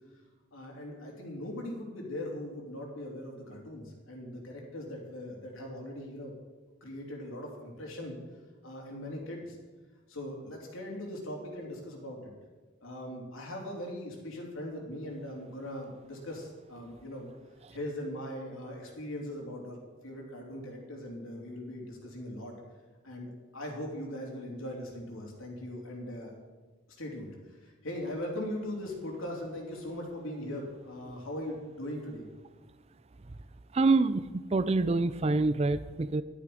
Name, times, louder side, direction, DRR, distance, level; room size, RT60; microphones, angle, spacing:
voice 1, 0.5-6.3 6.8-8.2 8.6-9.6 10.1-12.3 12.8-17.3 17.7-22.5 23.0-26.3 27.0-32.2, left 1 dB, 85° left, -1 dB, 3.3 m, -40 dB
voice 2, 33.7-36.2, right 3 dB, 30° right, 14 dB, 0.4 m, -26 dB
12.0 x 11.0 x 5.1 m, 1.3 s
head